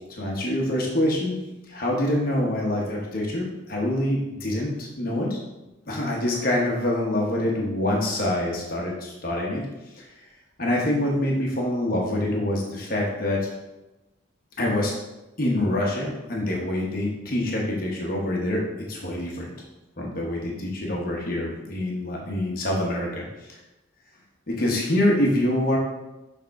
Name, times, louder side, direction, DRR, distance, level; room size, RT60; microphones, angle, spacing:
voice 1, 0.0-1.4 1.7-5.4 5.9-9.6 9.9-10.1 10.6-13.5 14.6-14.9 15.4-18.6 18.9-19.5 20.0-23.6 24.5-25.8, left 1 dB, 45° left, -2 dB, 1.0 m, -25 dB
6.5 x 3.5 x 4.6 m, 1.0 s
head